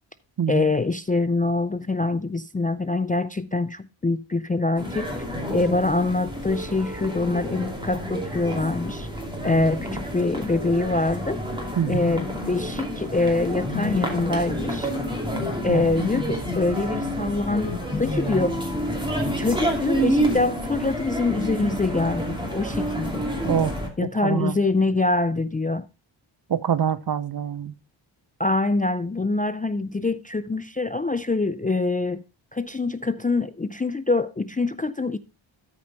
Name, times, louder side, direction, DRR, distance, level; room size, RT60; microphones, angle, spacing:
voice 1, 0.5-5.1 5.5-9.1 9.4-11.4 11.9-14.9 15.6-18.6 19.2-23.6 24.0-25.9 28.4-32.2 32.5-35.2, left 3 dB, 20° left, 0.3 m, -24 dB
sound 1, 4.8-23.9, equal, 10° right, 2.6 m, -29 dB
voice 2, 24.2-24.6 26.5-27.7, right 8 dB, 50° right, 0.6 m, -25 dB
13.0 x 5.2 x 4.0 m
wide cardioid pair, 100°, 49 cm